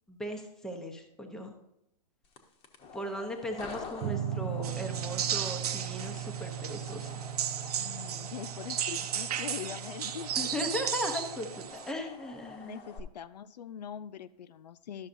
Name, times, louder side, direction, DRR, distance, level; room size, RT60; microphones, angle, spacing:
voice 1, 0.1-1.5 2.9-7.2 10.4-12.8, left 1 dB, 5° left, 3 dB, 0.8 m, -37 dB
sound 1, 2.2-13.0, left 5 dB, 25° left, 1.0 m, -48 dB
sound 2, 4.0-11.7, right 11 dB, 35° right, 0.5 m, -39 dB
sound 3, 4.6-11.9, right 9 dB, 70° right, 0.7 m, -35 dB
voice 2, 7.8-10.5 12.6-15.1, left 9 dB, 85° left, 14 dB, 0.5 m, -43 dB
12.0 x 6.3 x 2.6 m, 0.83 s
hypercardioid pair, 150°, 21 cm